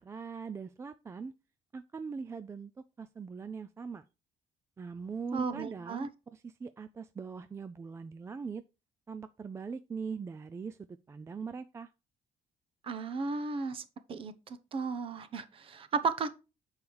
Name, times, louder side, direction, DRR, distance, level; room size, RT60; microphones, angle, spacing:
voice 1, 0.0-1.3 1.7-2.7 3.0-4.1 4.8-8.6 9.1-11.9, right 5 dB, 20° right, 0.3 m, -41 dB
voice 2, 5.3-6.1 12.8-13.8 14.1-16.3, right 4 dB, 40° right, 0.8 m, -34 dB
7.0 x 4.8 x 4.6 m
cardioid pair, 135°, 14 cm